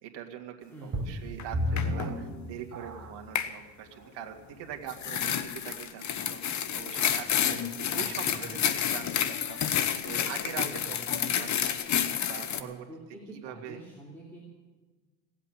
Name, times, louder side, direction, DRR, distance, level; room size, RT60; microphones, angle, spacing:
voice 1, 0.0-7.6 7.9-10.6 11.1-12.0 12.2-12.9 13.3-13.8, right 10 dB, 60° right, 3 dB, 2.1 m, -43 dB
voice 2, 0.7-1.1 7.3-8.7 10.5-11.6 12.5-14.4, right 2 dB, 5° left, -5 dB, 3.2 m, -46 dB
sound 1, 0.9-3.4 4.0-4.1 4.7-4.8, left 1 dB, 35° right, 3.3 m, -32 dB
sound 2, 1.4-1.5 1.8-2.1 3.4-3.5 4.9-12.6, left 9 dB, 35° left, 1.0 m, -29 dB
17.5 x 8.3 x 9.0 m, 1.3 s
supercardioid pair, 100°, 48 cm